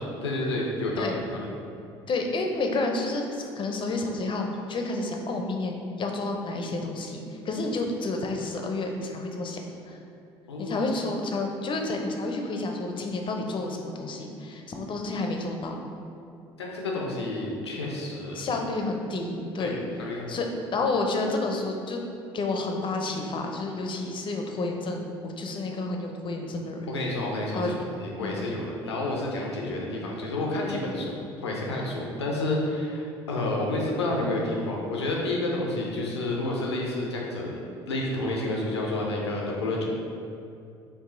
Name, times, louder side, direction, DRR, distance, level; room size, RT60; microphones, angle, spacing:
voice 1, 0.0-1.5 10.5-10.8 16.6-18.4 19.6-19.7 20.0-20.2 26.9-27.6 28.0-37.5 37.9-39.9, left 2 dB, 85° left, -2 dB, 0.6 m, -29 dB
voice 2, 2.1-9.6 9.9-10.0 10.6-15.8 18.3-19.8 20.3-22.0 22.3-26.9 27.5-27.7 28.2-28.4, left 2 dB, 35° left, 3 dB, 0.6 m, -30 dB
4.7 x 2.7 x 3.8 m, 2.6 s
hypercardioid pair, 60°, 14 cm